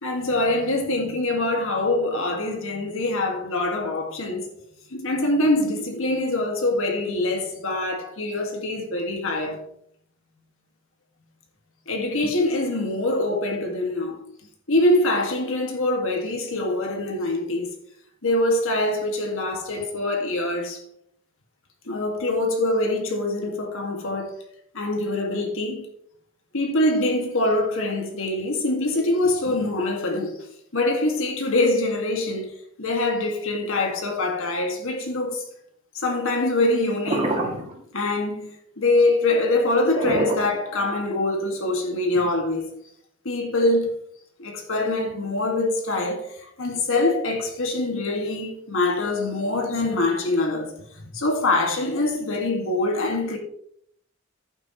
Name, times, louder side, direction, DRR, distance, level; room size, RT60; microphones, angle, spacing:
voice 1, 0.0-4.5 4.9-9.6 11.9-14.2 14.7-17.8 18.2-20.8 21.9-24.4 24.7-25.9 26.5-30.5 30.7-32.5 32.8-35.5 35.9-37.4 37.9-38.5 38.8-42.8 43.2-43.9 44.4-50.7 51.1-53.4, left 2 dB, 65° left, 2.0 m, -24 dB
sound 1, 37.0-37.8 39.9-41.0 41.7-41.8, right 1 dB, 30° right, 2.4 m, -25 dB
11.5 x 9.0 x 3.1 m
head